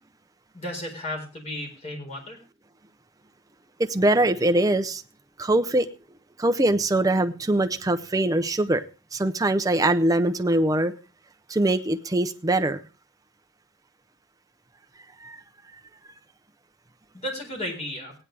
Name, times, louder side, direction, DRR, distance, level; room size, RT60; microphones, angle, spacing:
voice 1, 0.5-2.4 17.1-18.1, left 1 dB, 35° left, 0 dB, 4.4 m, -34 dB
voice 2, 3.8-5.0 5.4-5.9 6.4-8.8 9.1-10.9 11.5-12.8 15.2-15.4, right 1 dB, 20° right, 8 dB, 0.6 m, -22 dB
16.5 x 9.9 x 3.4 m, 0.32 s
head